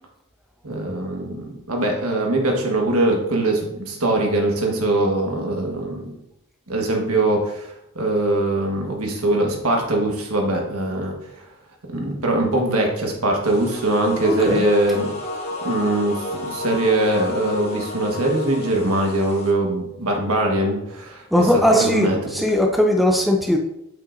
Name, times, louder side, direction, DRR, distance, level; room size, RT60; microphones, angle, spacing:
voice 1, 0.6-6.1 6.7-7.7 7.9-11.1 11.9-15.1 15.6-21.5 21.7-22.1, right 2 dB, 75° right, 1 dB, 1.4 m, -22 dB
sound 1, 13.4-19.5, left 2 dB, 30° left, 1.3 m, -32 dB
voice 2, 14.2-14.7 21.3-23.6, left 1 dB, ahead, 2 dB, 0.5 m, -19 dB
7.7 x 5.5 x 2.6 m, 0.84 s
head